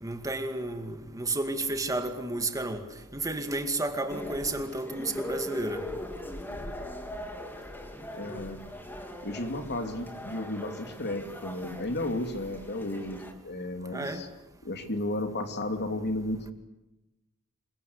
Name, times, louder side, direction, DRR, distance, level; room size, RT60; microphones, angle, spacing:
voice 1, 0.0-2.8 3.1-5.8 13.9-14.2, right 2 dB, 15° right, 2.2 m, -32 dB
sound 1, 4.1-13.3, left 1 dB, 10° left, 3.1 m, -40 dB
voice 2, 8.2-8.6 9.2-14.3 14.6-16.5, left 1 dB, 50° left, 2.9 m, -33 dB
27.0 x 23.5 x 8.2 m
head